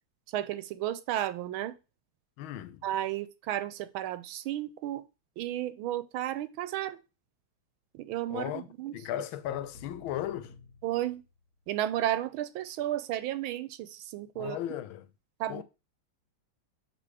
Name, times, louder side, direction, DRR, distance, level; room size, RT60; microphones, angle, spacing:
voice 1, 0.3-1.8 2.8-5.0 5.4-7.0 7.9-9.0 10.8-11.2 11.7-14.8 15.4-15.6, right 13 dB, 85° right, 1.5 m, -33 dB
voice 2, 2.4-2.8 8.3-8.7 8.9-10.5 14.4-15.1 15.5-15.6, left 12 dB, 85° left, 1.4 m, -36 dB
sound 1, 9.4-11.7, left 4 dB, 50° left, 1.6 m, -53 dB
7.7 x 3.2 x 4.8 m
omnidirectional pair, 2.2 m